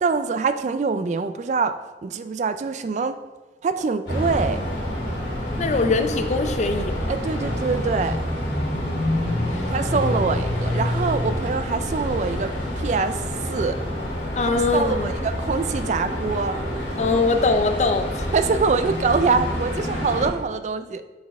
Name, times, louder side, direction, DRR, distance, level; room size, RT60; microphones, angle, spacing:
voice 1, 0.0-1.8 2.0-3.2 3.6-4.6 7.1-8.2 9.7-13.2 13.5-13.8 14.4-16.6 18.3-21.0, right 4 dB, 40° right, 11 dB, 0.3 m, -24 dB
sound 1, 4.1-20.3, left 1 dB, 65° left, 2.0 m, -27 dB
voice 2, 5.6-7.1 14.4-15.1 17.0-18.3, left 3 dB, 40° left, 7 dB, 0.5 m, -22 dB
7.0 x 4.2 x 3.5 m, 1.2 s
head